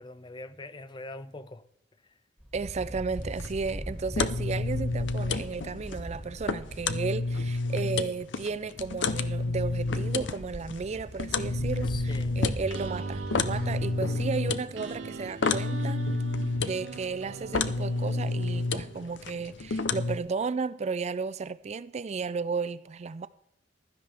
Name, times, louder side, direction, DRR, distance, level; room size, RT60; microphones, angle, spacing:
voice 1, 0.0-1.7 2.0-2.2 11.8-12.4, left 2 dB, 25° left, 0.5 m, -43 dB
sound 1, 2.4-7.9 8.5-8.6 8.8-14.3, equal, 5° left, 2.2 m, -41 dB
voice 2, 2.5-11.9 12.4-16.0 16.6-23.3, right 4 dB, 35° right, 0.4 m, -34 dB
sound 2, 3.1-20.2, left 3 dB, 70° left, 0.6 m, -31 dB
sound 3, 12.4-19.2, right 3 dB, 90° right, 0.7 m, -40 dB
15.5 x 12.5 x 3.5 m
head